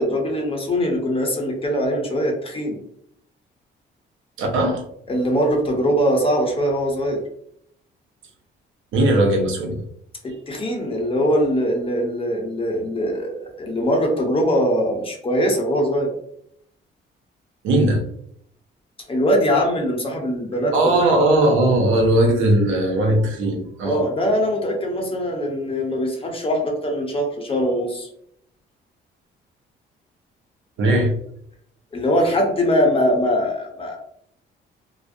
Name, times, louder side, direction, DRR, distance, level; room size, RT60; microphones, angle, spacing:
voice 1, 0.0-2.8 5.1-7.2 10.2-16.1 19.1-21.1 23.8-28.1 31.9-34.0, equal, 30° left, 1 dB, 0.8 m, -22 dB
voice 2, 4.4-4.8 8.9-9.8 17.6-18.0 20.7-24.0 30.8-31.1, right 1 dB, 85° right, 2 dB, 0.7 m, -18 dB
2.4 x 2.0 x 2.5 m, 0.70 s
cardioid pair, 90°, 20 cm